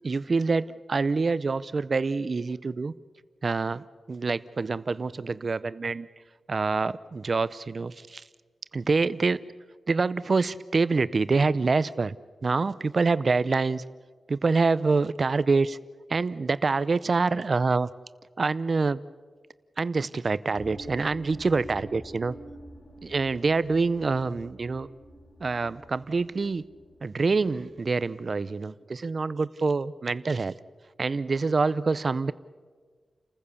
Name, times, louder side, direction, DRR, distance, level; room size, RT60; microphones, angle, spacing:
voice 1, 0.0-2.9 3.4-6.1 6.5-8.2 8.7-9.4 9.9-12.2 12.4-13.8 14.3-15.8 16.1-17.9 18.4-19.0 19.8-22.3 23.0-24.9 25.4-26.7 27.0-30.5 31.0-32.3, right 4 dB, 40° right, 17 dB, 0.6 m, -26 dB
sound 1, 20.5-28.1, right 1 dB, 70° left, 5.8 m, -48 dB
29.5 x 15.0 x 7.0 m, 1.5 s
wide cardioid pair, 155°, 0 cm